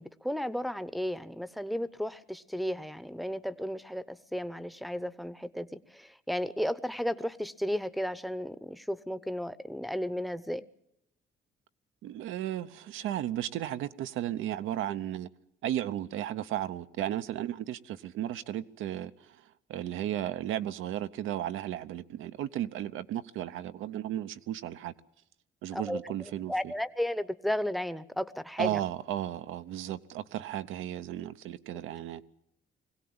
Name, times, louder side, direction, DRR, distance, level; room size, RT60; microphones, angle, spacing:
voice 1, 0.0-10.7 25.7-26.0 26.5-28.8, equal, ahead, 0.8 m, -34 dB
voice 2, 12.0-15.3 15.6-19.4 19.7-24.9 25.6-26.7 28.6-32.2, right 12 dB, 85° right, 0.8 m, -34 dB
21.5 x 17.0 x 8.7 m
cardioid pair, 90°, 20 cm